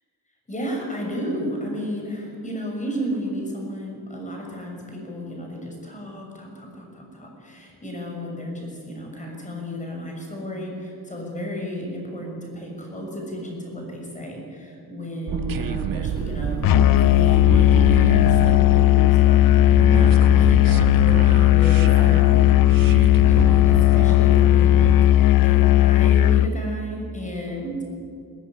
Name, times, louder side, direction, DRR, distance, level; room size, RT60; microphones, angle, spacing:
voice 1, 0.5-19.4 19.7-22.5 23.2-27.8, equal, 20° left, 1 dB, 6.5 m, -33 dB
sound 1, 15.3-24.9, right 7 dB, 60° right, 1.5 m, -29 dB
Musical instrument, 16.6-26.6, left 13 dB, 65° left, 0.6 m, -16 dB
21.5 x 19.0 x 9.9 m, 2.5 s
wide cardioid pair, 160°, 37 cm